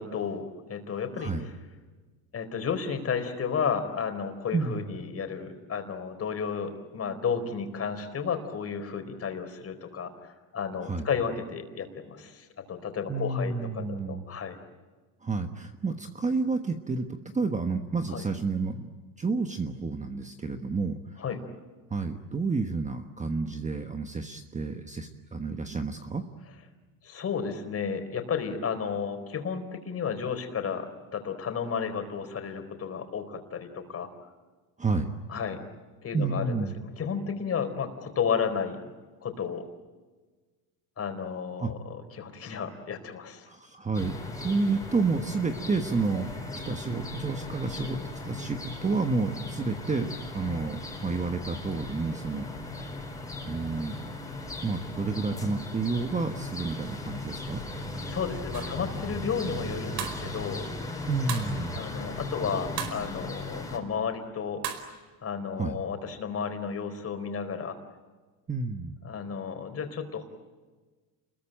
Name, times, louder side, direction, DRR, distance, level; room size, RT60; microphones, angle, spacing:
voice 1, 0.0-1.5 2.3-14.5 18.1-18.3 21.2-21.4 27.0-30.9 31.1-34.1 35.3-35.6 36.0-38.8 39.2-39.6 41.0-43.5 58.0-60.7 61.7-64.6 65.2-67.8 69.0-70.2, left 6 dB, 30° left, 6 dB, 4.3 m, -32 dB
voice 2, 4.5-4.8 10.8-11.1 13.1-14.2 15.2-18.9 19.2-21.0 21.9-26.3 34.8-35.1 36.1-36.8 41.6-41.7 43.5-46.3 46.7-48.0 48.2-52.5 53.4-54.0 54.6-57.6 61.1-61.8 65.6-65.8 68.5-68.9, right 4 dB, 15° right, 6 dB, 1.3 m, -30 dB
sound 1, 43.9-63.8, left 2 dB, 5° left, 4.5 m, -38 dB
sound 2, 58.5-58.8 60.0-60.3 61.3-61.6 62.8-63.0 64.6-64.9, right 9 dB, 75° right, 5.0 m, -35 dB
29.5 x 22.0 x 9.0 m, 1.3 s
cardioid pair, 135°, 46 cm